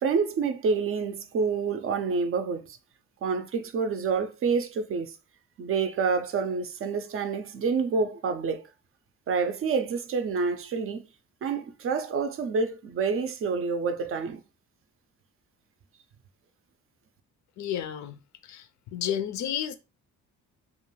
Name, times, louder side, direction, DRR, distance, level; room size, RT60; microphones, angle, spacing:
voice 1, 0.0-2.8 3.2-5.2 5.6-8.6 9.3-11.1 11.4-14.4, right 5 dB, 45° right, 0.4 m, -28 dB
voice 2, 17.6-18.2 18.4-18.7 18.9-19.7, left 10 dB, 70° left, 0.5 m, -31 dB
2.4 x 2.3 x 3.0 m
cardioid pair, 90°, 30 cm